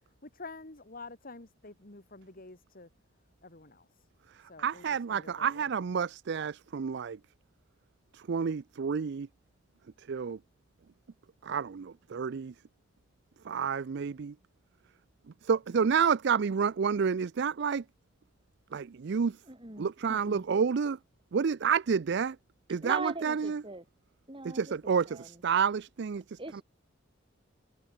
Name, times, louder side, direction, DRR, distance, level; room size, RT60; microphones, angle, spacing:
voice 1, 0.2-2.9 3.4-3.9 4.5-4.8 5.1-5.7, left 3 dB, 45° left, 2.5 m, -48 dB
voice 2, 4.6-7.2 8.1-9.3 10.1-10.4 11.4-12.5 13.5-14.3 15.4-17.8 18.7-19.4 19.8-21.0 21.3-22.4 22.7-23.6 24.5-26.6, right 6 dB, 60° right, 0.4 m, -29 dB
voice 3, 19.4-20.4 22.8-23.8 24.3-25.4 26.4-26.6, right 2 dB, 25° right, 3.3 m, -41 dB
head